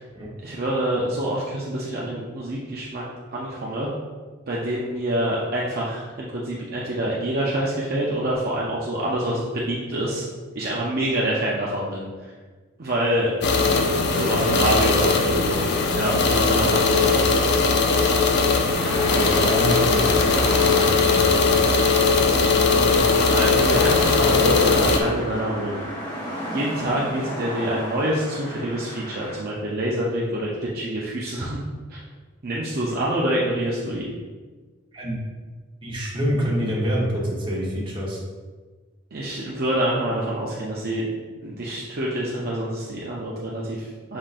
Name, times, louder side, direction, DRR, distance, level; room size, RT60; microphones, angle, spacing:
voice 1, 0.4-3.9 4.5-10.2 10.5-12.3 12.8-13.3 14.1-15.7 15.9-17.3 22.7-25.9 26.5-31.6 31.9-32.0 32.4-34.1 39.1-41.0 41.4-44.2, right 1 dB, 45° right, -5 dB, 0.6 m, -26 dB
sound 1, 13.4-25.0, left 4 dB, 55° left, 0.4 m, -19 dB
voice 2, 14.1-15.1 18.9-20.3 20.6-21.7 34.9-35.2 35.8-38.2, equal, 25° right, -5 dB, 1.0 m, -27 dB
sound 2, 18.7-29.4, equal, 15° left, 1.5 m, -32 dB
5.3 x 3.7 x 2.5 m, 1.4 s
head